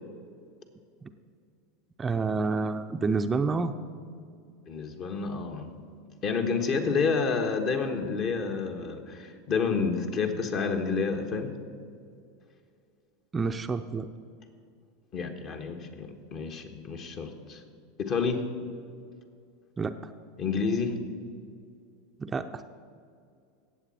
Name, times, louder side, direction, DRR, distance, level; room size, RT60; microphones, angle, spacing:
voice 1, 2.0-3.7 13.3-14.1 19.8-20.1 22.2-22.6, right 4 dB, 20° right, 8 dB, 0.5 m, -29 dB
voice 2, 4.7-5.7 6.2-11.5 15.1-17.6 18.0-18.4 20.4-21.0, left 5 dB, 45° left, 5 dB, 1.3 m, -29 dB
17.0 x 7.6 x 4.3 m, 2.3 s
hypercardioid pair, 85°, 0 cm